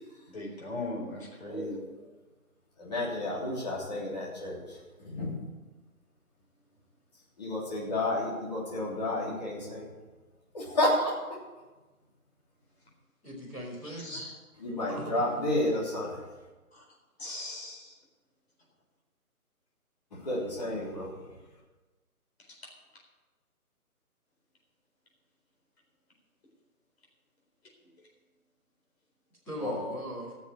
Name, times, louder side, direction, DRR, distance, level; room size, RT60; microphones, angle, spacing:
voice 1, 0.3-1.8 14.0-14.3 16.7-16.8 17.2-17.9, left 2 dB, 40° left, -1 dB, 4.3 m, -38 dB
voice 2, 1.4-2.0 2.8-4.6 5.0-5.4 7.4-9.9 10.5-11.1 14.6-16.2 20.2-21.1 29.6-29.7, left 1 dB, 25° left, -6 dB, 3.4 m, -31 dB
voice 3, 13.2-14.2 14.9-15.2 29.4-30.3, right 1 dB, 5° left, -12 dB, 1.8 m, -39 dB
15.0 x 7.2 x 7.3 m, 1.2 s
hypercardioid pair, 175°, 45 cm